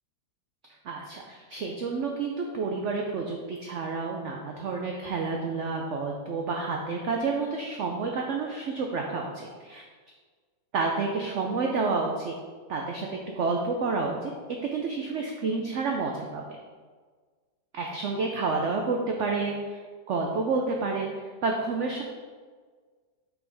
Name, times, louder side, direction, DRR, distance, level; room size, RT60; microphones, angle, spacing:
voice 1, 0.8-9.8 10.7-12.3 12.7-14.3 14.7-16.4 17.7-19.8 20.1-21.1 21.4-22.0, right 4 dB, 65° right, 1 dB, 0.7 m, -29 dB
6.1 x 5.3 x 3.4 m, 1.5 s
omnidirectional pair, 1.8 m